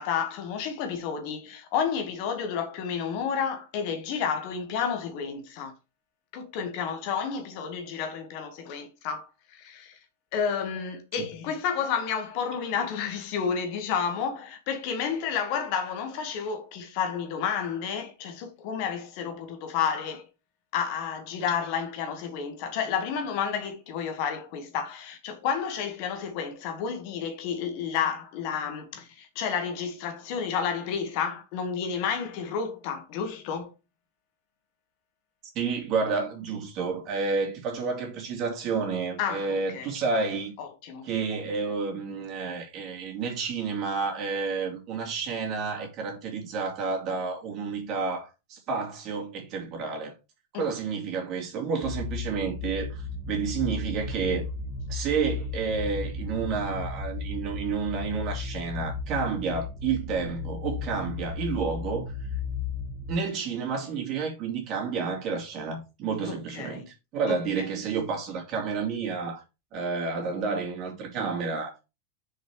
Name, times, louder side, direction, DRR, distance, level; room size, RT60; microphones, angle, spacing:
voice 1, 0.0-5.7 6.3-9.2 9.5-10.0 10.3-20.2 20.7-33.7 39.2-39.9 40.6-41.1 50.5-50.7 66.3-66.9 67.3-67.7, left 7 dB, 45° left, 1.9 m, -31 dB
voice 2, 35.5-40.5 41.0-50.1 50.5-54.4 54.9-62.3 63.1-69.4 69.7-71.8, right 5 dB, 35° right, 3.1 m, -30 dB
sound 1, 51.8-63.1, left 4 dB, 15° right, 2.2 m, -34 dB
6.7 x 5.2 x 4.8 m
figure-of-eight pair, 90°, 0 cm